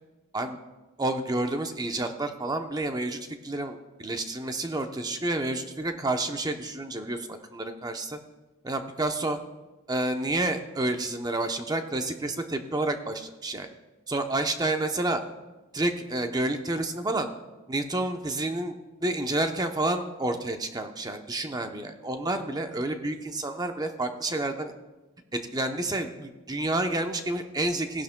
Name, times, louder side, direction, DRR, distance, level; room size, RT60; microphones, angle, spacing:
voice 1, 1.0-8.2 8.6-9.4 9.9-13.7 14.1-15.2 15.7-17.3 17.7-18.7 19.0-24.7 25.3-28.0, right 2 dB, 20° right, 6 dB, 0.7 m, -29 dB
17.5 x 11.0 x 2.2 m, 1.1 s
head